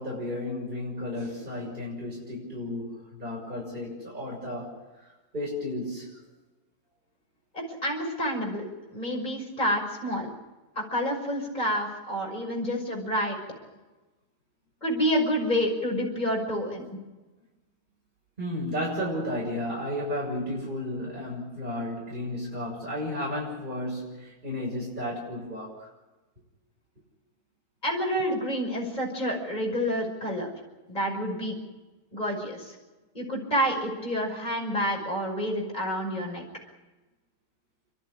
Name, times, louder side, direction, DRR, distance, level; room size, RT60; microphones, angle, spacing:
voice 1, 0.0-4.7 5.3-6.2 18.4-25.9, left 1 dB, 30° right, -4 dB, 6.8 m, -33 dB
voice 2, 7.5-10.3 10.8-13.4 14.8-17.0 27.8-30.5 30.9-31.6 32.1-32.7 33.1-36.4, equal, 25° left, -1 dB, 6.0 m, -28 dB
30.0 x 12.5 x 9.8 m, 1.1 s
omnidirectional pair, 1.8 m